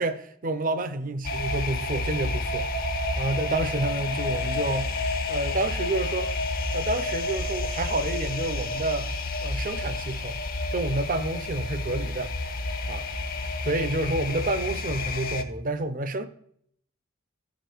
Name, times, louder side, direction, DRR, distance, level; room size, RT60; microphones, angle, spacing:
voice 1, 0.0-2.7 3.2-4.9 5.3-6.3 6.7-9.1 9.4-10.4 10.7-12.3 12.9-13.1 13.6-16.2, right 2 dB, 45° right, 0.7 m, -29 dB
sound 1, 1.2-15.4, left 2 dB, 50° left, 0.8 m, -30 dB
14.0 x 5.2 x 4.5 m
head